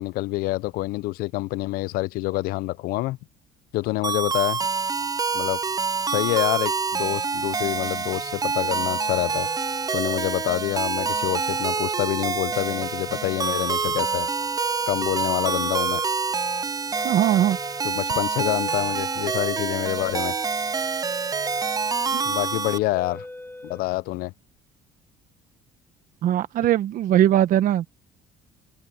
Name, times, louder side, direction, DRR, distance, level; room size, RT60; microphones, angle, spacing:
voice 1, 0.0-3.2 3.7-4.6 5.3-5.6 6.0-9.5 9.9-14.3 14.9-16.0 17.8-20.4 22.2-23.3 23.6-24.3, left 19 dB, 75° left, 0.7 m, -27 dB
sound 1, 4.0-22.8, right 5 dB, 25° right, 0.7 m, -27 dB
sound 2, 8.6-23.8, left 1 dB, 10° left, 2.9 m, -41 dB
voice 2, 17.0-17.6 22.1-22.2 26.2-27.9, right 11 dB, 60° right, 1.1 m, -20 dB
supercardioid pair, 80°, 15 cm